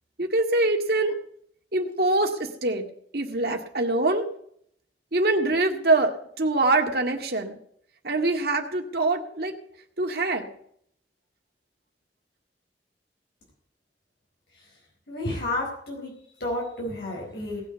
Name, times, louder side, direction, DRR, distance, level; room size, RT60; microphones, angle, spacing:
voice 1, 0.2-1.1 1.7-2.9 3.1-4.3 5.1-7.6 8.0-9.5 10.0-10.5, right 2 dB, 60° right, 3 dB, 2.0 m, -24 dB
voice 2, 15.1-16.1 16.4-17.6, left 1 dB, 65° left, -1 dB, 4.3 m, -31 dB
18.5 x 6.3 x 8.1 m, 0.68 s
head